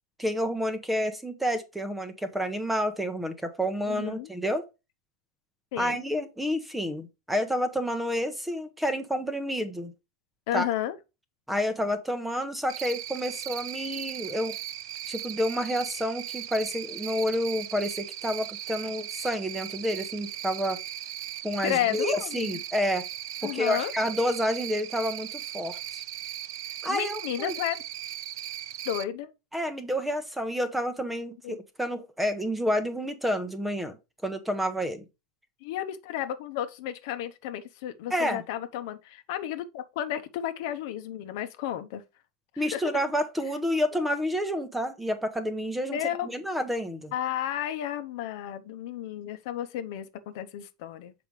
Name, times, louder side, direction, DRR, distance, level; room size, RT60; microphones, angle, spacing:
voice 1, 0.2-4.6 5.8-9.9 10.5-10.6 11.5-14.5 15.1-20.8 21.4-23.0 23.4-26.0 26.8-27.5 29.5-34.0 34.2-35.0 38.1-38.4 42.6-47.1, equal, 5° right, 0.8 m, -29 dB
voice 2, 3.8-4.3 5.7-6.0 10.5-11.0 21.6-22.6 23.4-23.9 26.9-27.8 28.8-29.3 31.4-31.6 35.6-42.0 42.5-42.9 45.9-46.3 47.1-51.1, left 11 dB, 60° left, 0.9 m, -32 dB
Cricket, 12.7-29.0, right 12 dB, 75° right, 0.5 m, -38 dB
6.7 x 5.1 x 3.2 m
supercardioid pair, 145°, 2 cm